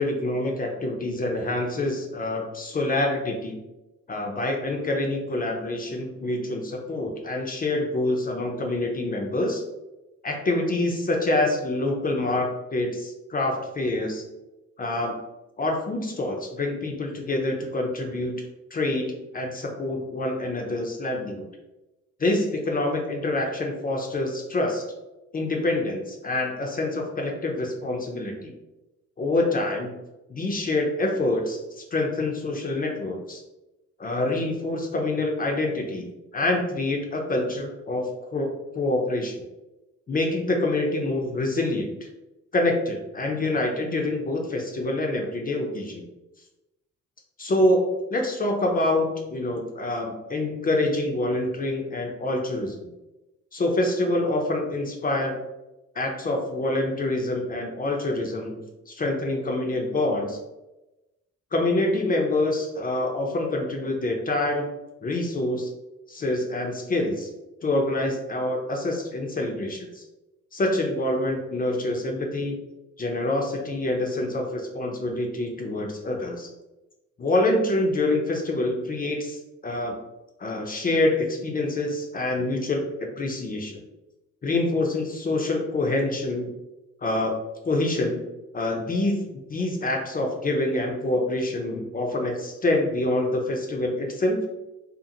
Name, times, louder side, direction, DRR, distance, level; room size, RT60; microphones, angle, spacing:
voice 1, 0.0-3.6 4.1-9.6 10.2-14.2 14.8-15.2 15.6-18.4 18.7-21.4 22.2-24.8 25.3-28.5 29.2-29.9 30.3-33.4 34.0-36.1 36.3-39.3 40.1-42.1 42.5-46.0 47.4-52.8 53.5-55.4 56.0-58.6 58.9-60.4 61.5-64.7 65.0-65.7 66.1-67.3 67.6-70.0 70.5-72.6 73.0-76.5 77.2-79.9 80.4-83.8 84.4-86.5 87.0-87.4 87.6-88.2 88.5-94.4, left 2 dB, 30° left, 1 dB, 0.5 m, -26 dB
2.5 x 2.4 x 2.7 m, 1.0 s
cardioid pair, 90°, 30 cm